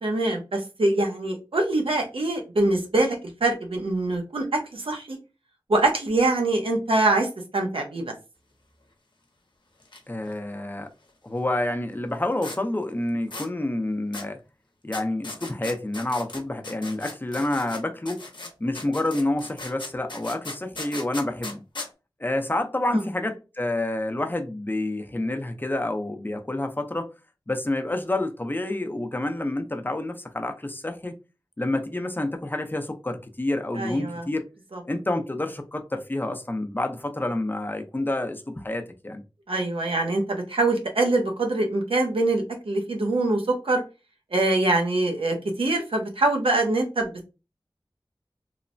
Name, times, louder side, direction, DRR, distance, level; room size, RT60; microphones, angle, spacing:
voice 1, 0.0-5.2 5.7-8.1 22.9-23.0 33.8-34.3 34.7-34.8 39.5-43.8 44.3-47.1, right 2 dB, 90° right, 0.7 m, -24 dB
sound 1, 9.8-10.0 10.2-10.3 12.4-12.6 13.3-13.5 14.1-14.3 14.9-17.8 18.1-21.9, left 2 dB, 60° left, 0.7 m, -38 dB
voice 2, 10.1-10.9 11.2-14.4 14.8-18.2 18.6-21.6 22.2-27.1 27.5-31.2 31.6-34.5 34.8-39.2, left 1 dB, 20° left, 0.5 m, -28 dB
3.1 x 2.0 x 2.5 m
wide cardioid pair, 60°, 9 cm